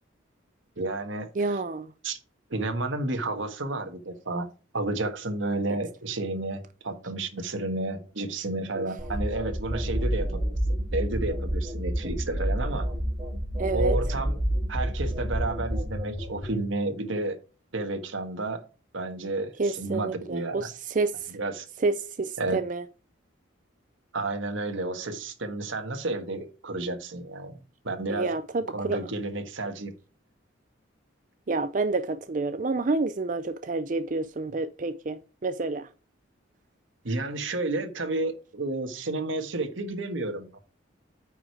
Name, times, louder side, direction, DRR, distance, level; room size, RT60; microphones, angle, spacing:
voice 1, 0.8-1.6 2.0-2.2 2.5-4.5 4.7-10.4 10.9-12.9 13.7-14.4 14.7-17.4 17.7-18.6 18.9-20.7 21.3-21.7 22.4-22.6 24.1-27.6 27.8-28.3 28.7-29.9 37.0-40.6, right 2 dB, 75° right, 1.5 m, -31 dB
voice 2, 1.4-1.9 8.8-8.9 13.6-14.0 19.6-21.3 21.8-22.8 28.1-29.0 31.5-35.9, right 3 dB, 40° right, 0.4 m, -29 dB
sound 1, 9.0-16.6, equal, 25° right, 4.2 m, -29 dB
8.9 x 5.0 x 4.8 m
head